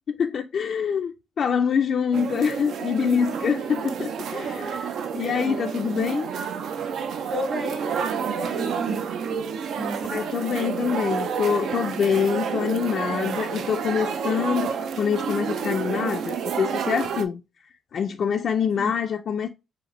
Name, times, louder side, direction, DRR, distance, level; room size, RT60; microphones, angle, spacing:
voice 1, 0.1-6.3 10.1-17.4 17.9-19.5, left 7 dB, 55° left, 0.3 m, -25 dB
sound 1, 2.1-17.2, right 7 dB, 75° right, 0.4 m, -29 dB
voice 2, 3.0-3.7 4.3-4.8 5.1-5.6 7.3-9.1 9.7-10.4 18.7-19.0, right 1 dB, 50° right, 1.8 m, -34 dB
4.9 x 2.5 x 3.0 m
cardioid pair, 90°, 0 cm